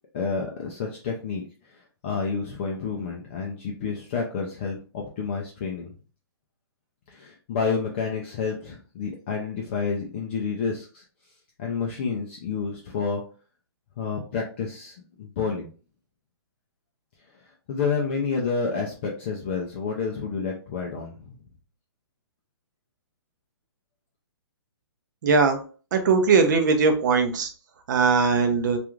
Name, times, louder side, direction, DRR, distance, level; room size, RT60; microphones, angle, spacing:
voice 1, 0.1-1.4 2.0-5.9 7.1-11.0 11.6-13.2 14.0-15.7 17.7-21.3, left 5 dB, 25° left, -1 dB, 0.4 m, -29 dB
voice 2, 25.2-25.6 25.9-27.5 27.9-28.8, right 4 dB, 45° right, 5 dB, 0.6 m, -20 dB
2.4 x 2.3 x 3.0 m, 0.37 s
hypercardioid pair, 165°, 14 cm